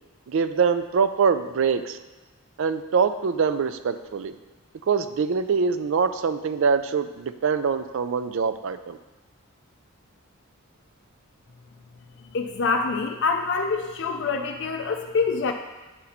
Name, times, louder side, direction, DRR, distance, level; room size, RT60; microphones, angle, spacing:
voice 1, 0.3-2.0 2.6-4.4 4.9-9.0, right 5 dB, 60° right, 11 dB, 0.4 m, -24 dB
voice 2, 12.3-15.5, left 4 dB, 55° left, 4 dB, 0.4 m, -25 dB
8.9 x 4.1 x 4.2 m, 1.2 s
head